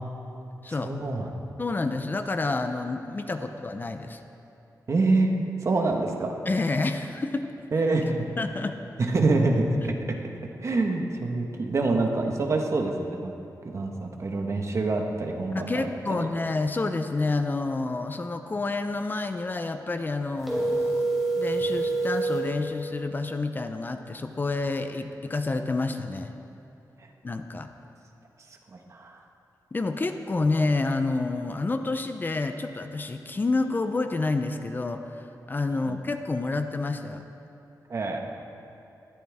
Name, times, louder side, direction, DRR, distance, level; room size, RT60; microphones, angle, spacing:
voice 1, 0.7-1.3 4.9-6.3 7.7-8.3 9.0-9.8 10.6-13.3 13.6-16.3 28.7-29.2 35.9-36.0 37.9-38.2, right 3 dB, 45° right, 2 dB, 1.4 m, -26 dB
voice 2, 1.6-4.2 6.5-7.5 8.4-8.8 15.5-21.1 21.3-26.3 27.2-27.7 29.7-37.3, left 3 dB, 30° left, 7 dB, 0.6 m, -29 dB
sound 1, 20.4-22.5, right 2 dB, ahead, 3.6 m, -26 dB
19.5 x 14.0 x 3.6 m, 2.9 s
wide cardioid pair, 115°, 7 cm